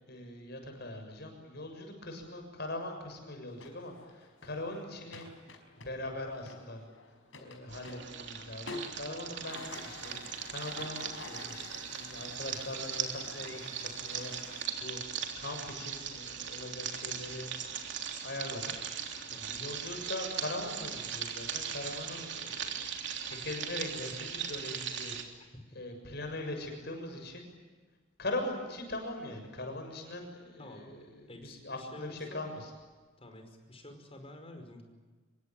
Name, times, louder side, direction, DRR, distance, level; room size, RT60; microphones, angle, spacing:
voice 1, 0.1-5.3 5.8-6.9 7.4-10.2 10.5-17.5 17.8-17.9 18.2-18.8 19.1-23.0 23.3-25.4 25.8-27.4 28.2-32.7, left 1 dB, 55° left, 5 dB, 6.9 m, -41 dB
sound 1, 3.5-14.7, left 2 dB, 80° left, 5.2 m, -49 dB
sound 2, 7.7-25.2, right 7 dB, 65° right, 3.4 m, -39 dB
voice 2, 19.3-19.7 25.5-25.6 30.6-30.9 31.3-32.5 33.2-34.8, left 1 dB, 30° left, 6 dB, 5.2 m, -49 dB
27.0 x 23.0 x 9.1 m, 1.4 s
head